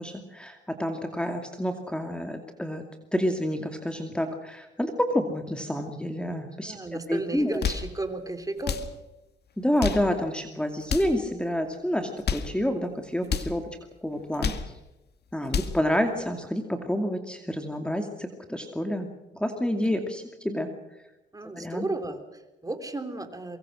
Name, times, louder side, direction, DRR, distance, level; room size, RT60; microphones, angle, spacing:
voice 1, 0.0-2.8 3.1-7.6 9.6-13.7 14.0-14.6 15.3-19.1 19.3-20.7 21.5-21.8, equal, 5° left, 5 dB, 2.4 m, -28 dB
voice 2, 6.6-8.8 21.3-23.6, right 2 dB, 15° right, 7 dB, 3.4 m, -34 dB
sound 1, 7.4-7.9 8.6-8.9 9.6-10.1 10.8-11.2 12.0-12.5 13.2-13.5 14.2-14.7 15.3-15.8, left 7 dB, 55° left, 2.0 m, -30 dB
23.5 x 23.0 x 6.4 m, 0.96 s
cardioid pair, 90°, 20 cm